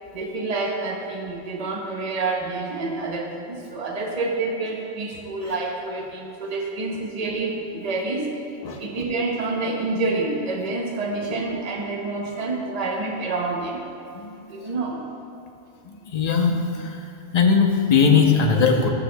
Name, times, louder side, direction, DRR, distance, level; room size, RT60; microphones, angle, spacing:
voice 1, 0.1-8.3 8.8-13.9 14.5-15.0, right 3 dB, 35° right, 0 dB, 0.9 m, -28 dB
voice 2, 16.1-16.9 17.3-18.9, left 5 dB, 35° left, 2 dB, 0.8 m, -19 dB
14.5 x 8.3 x 2.3 m, 2.8 s
omnidirectional pair, 1.3 m